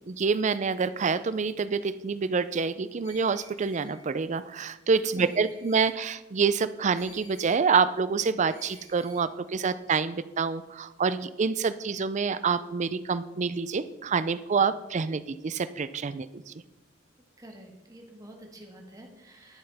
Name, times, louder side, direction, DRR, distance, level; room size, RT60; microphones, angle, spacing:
voice 1, 0.1-16.5, right 5 dB, 40° right, 14 dB, 0.4 m, -27 dB
Screech, 3.0-4.0 5.1-5.9 6.9-7.6 8.5-9.3, left 2 dB, 35° left, 3.3 m, -53 dB
voice 2, 17.4-19.6, right 1 dB, 20° right, 1 dB, 1.6 m, -48 dB
11.0 x 9.5 x 3.5 m, 1.0 s
head